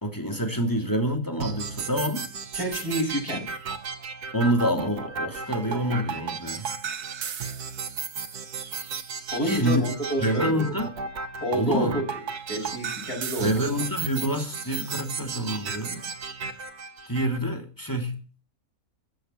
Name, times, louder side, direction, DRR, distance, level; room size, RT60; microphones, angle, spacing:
voice 1, 0.0-2.2 4.3-6.7 9.4-9.8 10.2-10.9 11.5-12.0 13.4-16.1 17.1-18.2, equal, 15° left, 3 dB, 2.8 m, -27 dB
sound 1, 1.4-17.4, right 5 dB, 85° right, 1.8 m, -34 dB
voice 2, 2.5-3.5 9.3-10.7 11.4-12.1 12.5-13.5, equal, 75° left, 1 dB, 8.1 m, -28 dB
15.0 x 7.9 x 9.1 m, 0.38 s
omnidirectional pair, 1.6 m